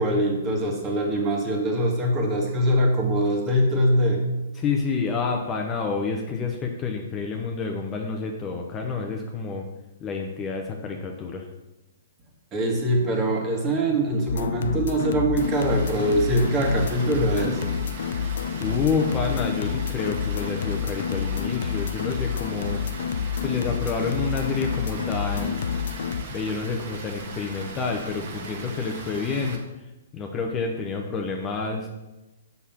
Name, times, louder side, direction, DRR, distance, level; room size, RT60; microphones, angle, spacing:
voice 1, 0.0-4.2 12.5-17.8, right 1 dB, 25° right, 1 dB, 1.8 m, -23 dB
voice 2, 4.6-9.6 10.0-11.5 18.6-22.8 23.4-25.7 26.3-29.6 30.1-31.9, left 4 dB, 20° left, 2 dB, 0.9 m, -28 dB
sound 1, 14.3-26.2, left 8 dB, 65° left, 0.5 m, -29 dB
Water, 15.4-29.6, right 3 dB, 50° right, 1.5 m, -39 dB
6.4 x 5.5 x 5.9 m, 1.0 s
hypercardioid pair, 140°, 0 cm